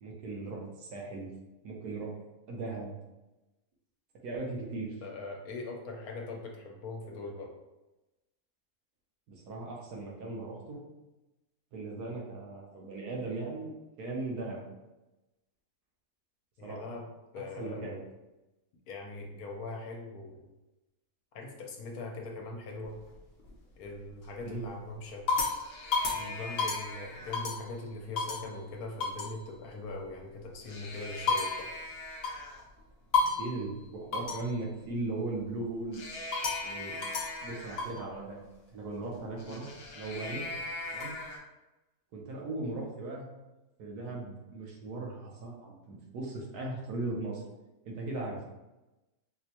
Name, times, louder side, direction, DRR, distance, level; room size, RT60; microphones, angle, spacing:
voice 1, 0.0-1.3 1.6-2.1 2.5-2.9 4.2-5.0 9.3-10.8 11.7-13.7 14.0-14.7 16.6-16.9 17.6-18.0 24.4-24.6 33.2-36.0 36.6-37.0 37.4-38.4 38.7-40.4 40.9-41.1 42.1-43.3 43.8-47.4 47.8-48.4, right 2 dB, 80° right, -1 dB, 1.3 m, -38 dB
voice 2, 5.0-7.5 16.6-17.1 17.3-18.0 18.9-20.5 21.3-23.0 23.8-25.3 26.1-31.7, left 3 dB, 75° left, 1 dB, 1.1 m, -41 dB
sound 1, 22.8-23.5 24.1-24.5 24.9-27.7 28.2-28.5 29.0-29.3 30.5-32.6 33.1-33.6 34.1-34.5 35.9-38.0 39.4-41.4, left 4 dB, 60° left, 0.6 m, -33 dB
4.3 x 2.1 x 2.8 m, 1.0 s
omnidirectional pair, 1.7 m